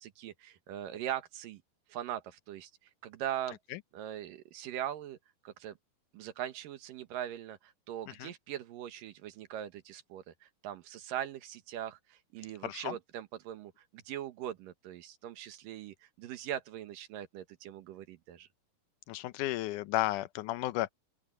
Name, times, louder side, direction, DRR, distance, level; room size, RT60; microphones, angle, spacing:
voice 1, 0.0-1.6 1.9-2.7 3.0-3.6 3.9-5.2 5.4-5.8 6.1-18.5, right 11 dB, 90° right, 3.0 m, -41 dB
voice 2, 12.6-13.0 19.1-20.9, left 17 dB, 80° left, 2.2 m, -33 dB
open air
omnidirectional pair, 3.7 m